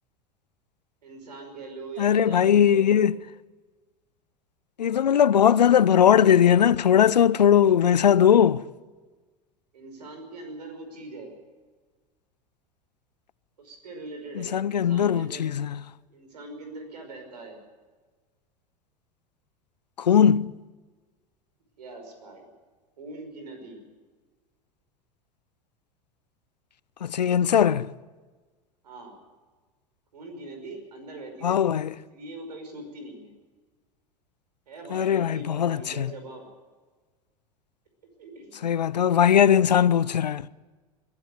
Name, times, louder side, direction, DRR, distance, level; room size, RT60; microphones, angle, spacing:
voice 1, 1.0-3.0 9.7-11.3 13.6-15.4 16.1-17.6 21.8-22.5 23.0-23.8 28.8-29.2 30.1-33.3 34.7-36.5 38.0-38.7, right 2 dB, 75° right, 5.5 m, -42 dB
voice 2, 2.0-3.1 4.8-8.6 14.4-15.8 20.0-20.6 27.0-27.9 31.4-31.9 34.9-36.1 38.6-40.5, left 9 dB, 80° left, 0.6 m, -20 dB
22.0 x 12.5 x 9.4 m
figure-of-eight pair, 80°, 21 cm